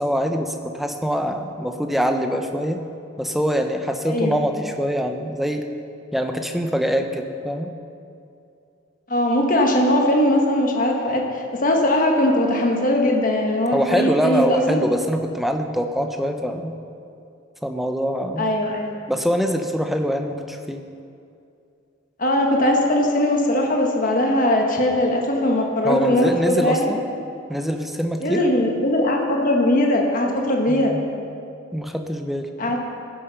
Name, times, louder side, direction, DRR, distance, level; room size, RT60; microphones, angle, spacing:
voice 1, 0.0-2.8 3.2-5.7 6.1-7.7 13.7-16.7 17.6-18.5 19.1-20.8 25.8-27.0 27.5-28.4 30.7-31.0 31.7-32.5, equal, ahead, 5 dB, 0.6 m, -24 dB
voice 2, 4.0-4.4 9.1-14.8 18.4-18.9 22.2-26.9 28.2-30.9 32.6-32.8, left 1 dB, 40° left, 1 dB, 1.4 m, -20 dB
16.0 x 7.6 x 5.7 m, 2.5 s
head